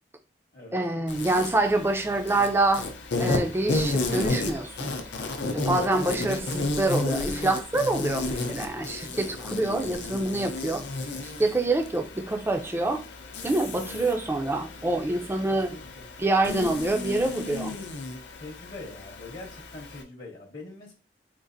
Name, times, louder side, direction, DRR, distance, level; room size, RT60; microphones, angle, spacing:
voice 1, 0.7-2.9 3.2-4.9 5.5-10.8 11.2-13.0 13.4-15.8 16.2-17.7, right 2 dB, 15° right, 5 dB, 0.3 m, -26 dB
Insect, 1.1-20.0, left 2 dB, 85° left, 0.6 m, -33 dB
voice 2, 13.7-14.0 15.5-16.1 18.4-20.9, left 2 dB, 50° left, -2 dB, 0.7 m, -44 dB
3.8 x 2.4 x 2.6 m, 0.32 s
head